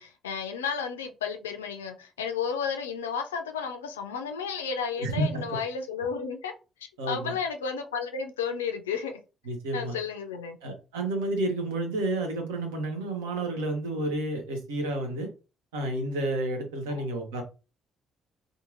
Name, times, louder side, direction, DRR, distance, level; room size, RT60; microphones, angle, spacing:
voice 1, 0.0-6.5 6.8-9.2 9.7-10.6, left 6 dB, 75° left, 0.3 m, -32 dB
voice 2, 5.0-5.6 7.0-7.3 9.5-9.9 10.6-15.3 15.7-17.4, right 2 dB, 70° right, 0.7 m, -30 dB
2.7 x 2.4 x 2.4 m
figure-of-eight pair, 45°, 0 cm